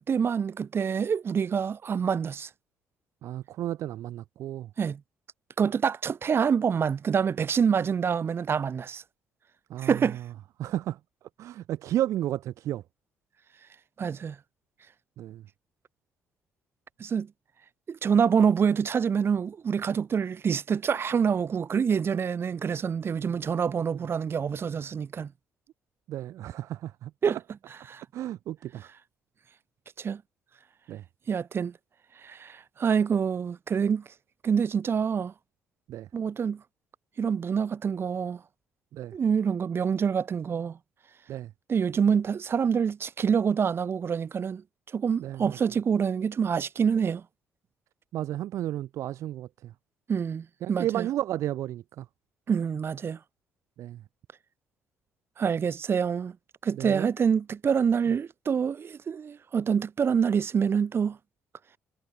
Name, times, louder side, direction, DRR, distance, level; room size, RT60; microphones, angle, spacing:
voice 1, 0.0-2.5 4.8-5.0 5.6-9.0 9.8-10.2 14.0-14.4 17.0-17.3 17.9-25.3 27.2-27.4 27.7-28.0 30.0-30.2 31.3-31.7 32.2-34.0 34.4-35.3 36.1-36.6 37.2-38.4 39.1-40.8 41.7-44.6 44.9-47.2 50.1-51.1 52.5-53.2 55.4-56.4 56.6-61.2, right 7 dB, 45° right, 2.4 m, -26 dB
voice 2, 3.2-4.7 9.7-10.0 10.6-11.0 11.4-12.8 15.2-15.4 26.1-27.4 28.1-28.9 30.9-31.0 35.9-36.1 38.9-39.1 41.3-41.5 45.2-45.6 48.1-49.7 50.6-52.0 53.8-54.0 56.8-57.0, right 13 dB, 60° right, 0.9 m, -33 dB
figure-of-eight pair, 50°, 6 cm